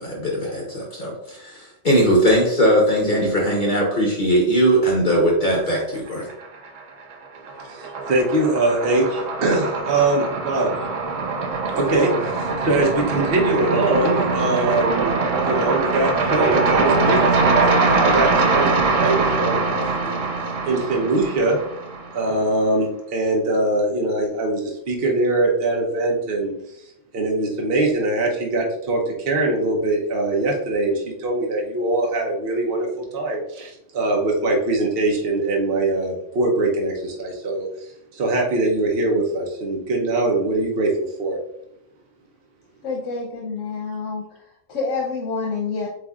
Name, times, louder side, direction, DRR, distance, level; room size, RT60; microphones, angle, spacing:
voice 1, 0.0-6.3, equal, 40° left, -3 dB, 1.0 m, -19 dB
sound 1, 6.1-6.8 7.1-22.3, right 3 dB, 85° right, 1.1 m, -22 dB
voice 2, 7.7-10.7 11.7-20.2 20.7-21.6 22.1-26.5 27.1-37.7 38.1-40.9 41.2-41.4, right 2 dB, 55° right, -1 dB, 1.0 m, -22 dB
voice 3, 42.8-44.2 44.7-45.9, left 4 dB, 80° left, -1 dB, 1.1 m, -27 dB
7.9 x 2.7 x 2.4 m, 0.77 s
omnidirectional pair, 1.3 m